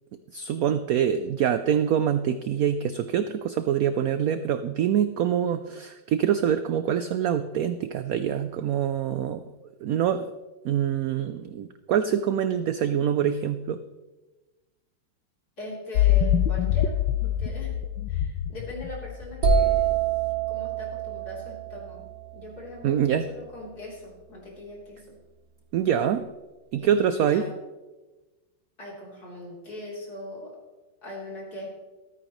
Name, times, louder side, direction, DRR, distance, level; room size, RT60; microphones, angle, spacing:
voice 1, 0.3-9.4 9.8-10.3 10.6-13.8 22.8-23.2 25.7-26.3 26.7-27.4, right 9 dB, 75° right, 10 dB, 0.8 m, -25 dB
voice 2, 15.6-16.9 17.2-17.8 18.1-20.0 20.5-22.1 22.3-25.2 26.8-27.5 28.8-30.6 31.0-31.7, left 1 dB, 55° left, -4 dB, 4.2 m, -40 dB
sound 1, 16.0-19.5, left 10 dB, 80° left, 1.3 m, -24 dB
sound 2, 19.4-23.2, right 6 dB, 55° right, 1.5 m, -26 dB
14.0 x 13.0 x 3.1 m, 1.2 s
omnidirectional pair, 2.0 m